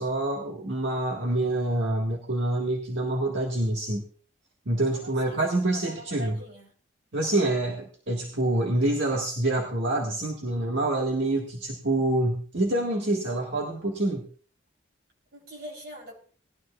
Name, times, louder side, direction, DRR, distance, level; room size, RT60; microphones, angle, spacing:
voice 1, 0.0-4.0 4.6-6.4 7.1-14.2, right 1 dB, 75° right, -1 dB, 1.6 m, -26 dB
voice 2, 4.9-5.4 5.7-6.7 15.3-16.2, equal, 55° right, 0 dB, 3.7 m, -43 dB
19.0 x 12.0 x 2.4 m, 0.43 s
head